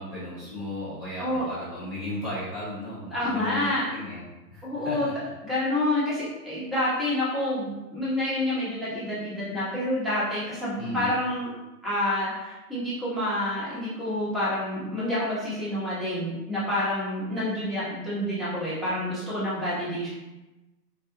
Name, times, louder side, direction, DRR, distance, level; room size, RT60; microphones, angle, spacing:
voice 1, 0.0-4.2 4.5-5.1 10.8-11.2, left 1 dB, 20° left, -11 dB, 0.4 m, -35 dB
voice 2, 3.1-3.8 4.6-5.1 5.4-11.5 11.8-20.1, left 1 dB, ahead, -11 dB, 0.9 m, -28 dB
3.7 x 2.3 x 2.7 m, 1.0 s
hypercardioid pair, 130°, 48 cm